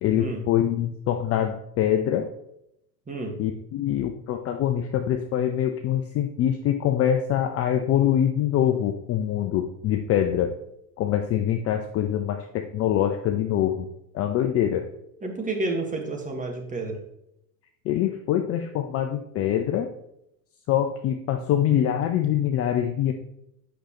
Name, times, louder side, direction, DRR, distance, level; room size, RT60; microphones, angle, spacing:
voice 1, 0.0-2.3 3.4-10.6 11.0-13.9 14.1-14.9 17.8-19.9 20.7-23.1, left 10 dB, 30° left, 6 dB, 0.5 m, -24 dB
voice 2, 15.2-17.0, right 2 dB, 15° right, 2 dB, 1.6 m, -30 dB
8.0 x 6.3 x 3.0 m, 0.80 s
hypercardioid pair, 90°, 50 cm